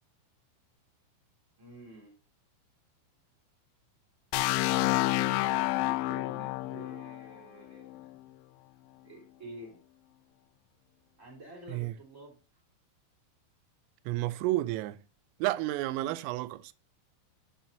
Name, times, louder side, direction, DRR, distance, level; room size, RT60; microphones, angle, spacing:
voice 1, 1.6-2.1 5.2-8.2 9.0-9.8 11.2-12.4, right 1 dB, 20° right, 3.0 m, -49 dB
sound 1, 4.3-8.2, left 18 dB, 85° left, 3.1 m, -29 dB
voice 2, 14.1-15.0 15.4-16.7, right 17 dB, 90° right, 3.2 m, -31 dB
12.0 x 7.6 x 2.7 m
omnidirectional pair, 5.8 m